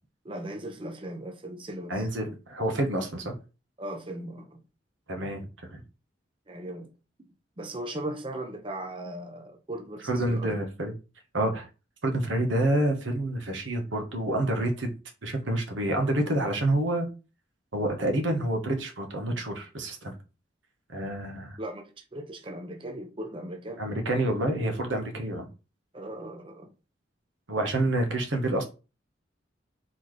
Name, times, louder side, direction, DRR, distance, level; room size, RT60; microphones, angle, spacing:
voice 1, 0.2-2.1 3.8-4.6 6.5-6.9 7.6-10.6 21.6-23.8 25.9-26.7, right 1 dB, 25° right, 0.6 m, -38 dB
voice 2, 1.9-3.3 5.1-5.8 10.0-10.9 11.3-11.6 12.0-14.9 15.2-17.1 17.7-20.1 20.9-21.6 23.8-25.4 27.5-28.6, right 1 dB, 90° right, 1.2 m, -28 dB
4.2 x 3.9 x 3.2 m
head